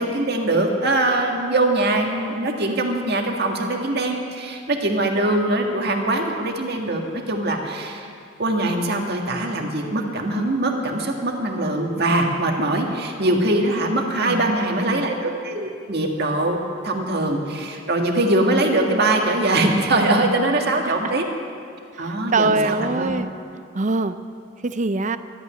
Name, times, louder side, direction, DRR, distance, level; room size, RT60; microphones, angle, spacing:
voice 1, 0.0-8.1 8.4-21.2 22.0-23.1, right 2 dB, 55° right, 2 dB, 1.8 m, -22 dB
voice 2, 14.3-15.1 20.8-20.9 22.0-23.3 23.7-24.1 24.6-25.2, right 3 dB, 40° right, 12 dB, 0.5 m, -23 dB
13.5 x 9.4 x 9.9 m, 2.3 s
head